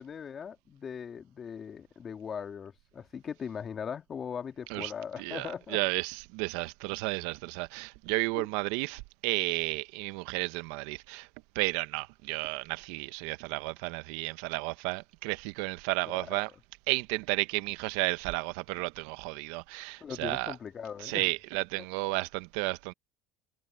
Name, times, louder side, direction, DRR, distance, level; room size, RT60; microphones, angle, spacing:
voice 1, 0.0-5.8 8.4-8.5 16.1-16.3 20.0-21.3, left 7 dB, 40° left, 2.5 m, -39 dB
voice 2, 4.7-11.3 11.5-16.5 16.9-20.5 21.0-22.9, right 23 dB, 75° right, 1.2 m, -33 dB
hypercardioid pair, 75°, 0 cm